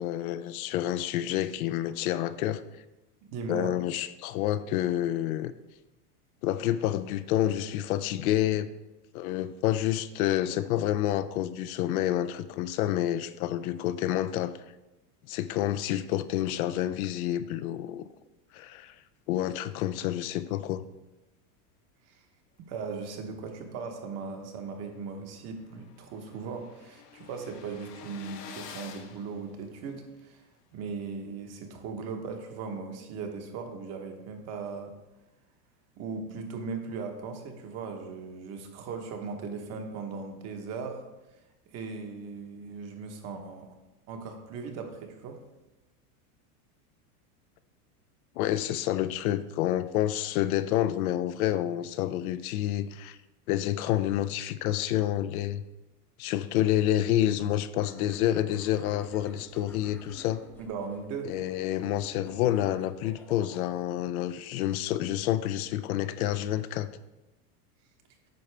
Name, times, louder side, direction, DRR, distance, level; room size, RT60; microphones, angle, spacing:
voice 1, 0.0-2.6 3.5-5.5 6.4-8.7 9.1-14.5 15.3-18.0 18.5-18.9 19.3-20.8 48.4-53.2 53.5-55.6 56.2-60.4 61.2-66.9, left 12 dB, 65° left, 13 dB, 0.5 m, -28 dB
voice 2, 3.3-3.8 22.1-22.2 22.6-30.4 30.7-34.9 36.0-41.0 41.7-43.7 44.1-45.4 60.6-61.3, right 5 dB, 35° right, 4 dB, 1.0 m, -38 dB
sound 1, 24.6-24.7 25.1-25.2 25.3-30.2, left 7 dB, 90° left, 1.1 m, -48 dB
sound 2, 57.7-64.0, left 1 dB, 5° left, 0.7 m, -51 dB
9.4 x 5.7 x 3.3 m, 1.0 s
supercardioid pair, 150°, 46 cm